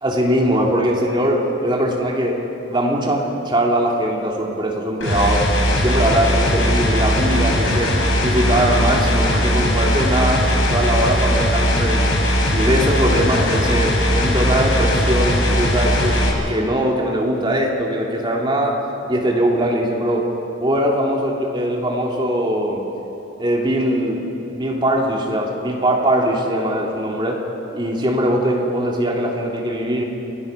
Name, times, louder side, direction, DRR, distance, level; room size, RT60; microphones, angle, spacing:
voice 1, 0.0-2.4 2.7-12.2 12.5-18.8 19.1-20.3 20.6-22.8 23.4-24.2 24.5-27.4 27.7-30.0, right 1 dB, 25° right, -1 dB, 3.0 m, -21 dB
sound 1, 5.0-16.3, equal, 85° left, 5.0 m, -19 dB
30.0 x 19.5 x 5.8 m, 2.9 s
head